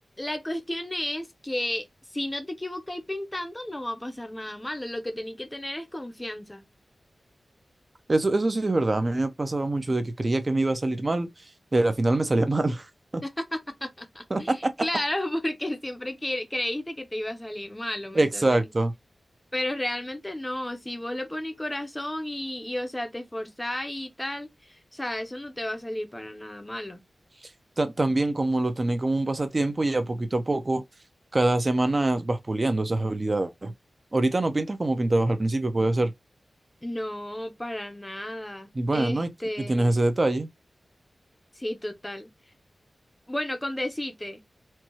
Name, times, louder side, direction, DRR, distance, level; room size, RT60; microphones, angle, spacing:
voice 1, 0.2-1.9 2.1-6.6 13.2-18.7 19.5-27.0 36.8-40.0 41.6-42.3 43.3-44.4, left 1 dB, 15° left, 0.7 m, -33 dB
voice 2, 8.1-11.3 11.7-12.9 13.1-13.2 14.3-14.7 18.1-18.9 27.8-30.8 31.3-33.7 34.1-36.1 38.7-39.3 39.6-40.5, right 2 dB, 30° right, 0.6 m, -24 dB
4.5 x 2.3 x 2.8 m
wide cardioid pair, 115°, 0 cm